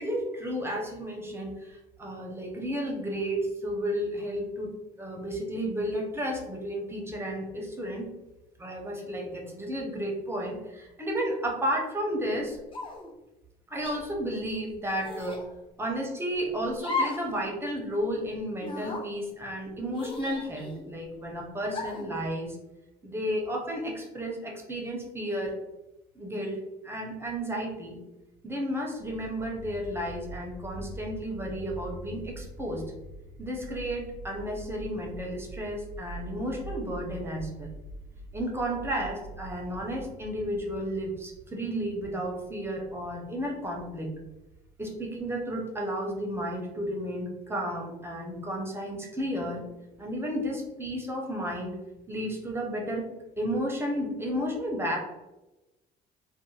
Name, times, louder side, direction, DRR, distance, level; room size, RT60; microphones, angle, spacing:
voice 1, 0.0-8.1 8.6-12.6 13.7-15.4 15.8-22.6 23.0-25.6 26.1-28.0 28.4-32.8 33.4-37.7 38.3-44.1 44.8-49.6 50.0-51.8 52.1-53.1 53.4-55.0, equal, 15° right, 0 dB, 0.6 m, -32 dB
sound 1, 12.7-13.1 13.8-14.0 15.0-15.4 16.8-17.3 17.6-17.7 18.6-19.0 19.9-20.9 21.7-22.1, left 3 dB, 30° left, 0.6 m, -34 dB
sound 2, 29.0-46.0, right 1 dB, 90° right, 0.5 m, -45 dB
2.5 x 2.1 x 3.0 m, 1.0 s
cardioid pair, 110°, 17 cm